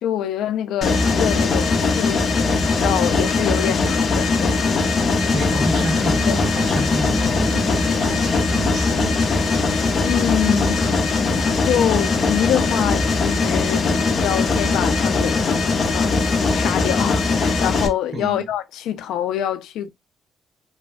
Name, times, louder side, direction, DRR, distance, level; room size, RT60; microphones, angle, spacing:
voice 1, 0.0-4.6 6.3-6.4 10.0-10.8 11.4-13.9 14.2-15.4 15.9-16.2 16.5-19.9, left 10 dB, 85° left, 0.4 m, -25 dB
Mechanisms, 0.8-17.9, left 3 dB, 50° left, 0.6 m, -20 dB
voice 2, 5.3-9.5 10.4-10.7 18.1-18.5, right 1 dB, 50° right, 1.3 m, -29 dB
3.1 x 2.2 x 2.4 m
cardioid pair, 90°, 0 cm